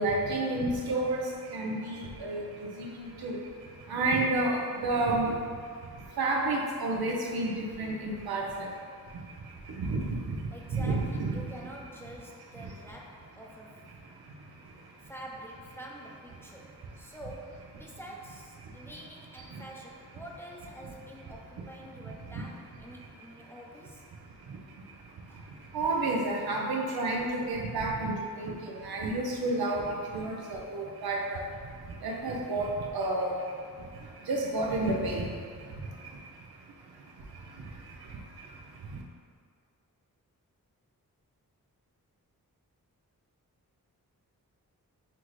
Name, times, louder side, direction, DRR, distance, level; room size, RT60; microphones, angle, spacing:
voice 1, 0.0-11.5 12.6-12.7 13.9-15.1 16.4-16.5 16.8-17.2 17.9-18.0 18.6-18.9 19.5-19.6 22.0-22.4 23.2-23.5 24.1-39.0, right 2 dB, 80° right, -1 dB, 0.7 m, -32 dB
voice 2, 10.5-13.9 15.0-24.0 25.3-25.5 25.8-26.5, right 1 dB, 5° left, -3 dB, 0.7 m, -47 dB
5.8 x 2.5 x 3.1 m, 2.1 s
cardioid pair, 45°, 37 cm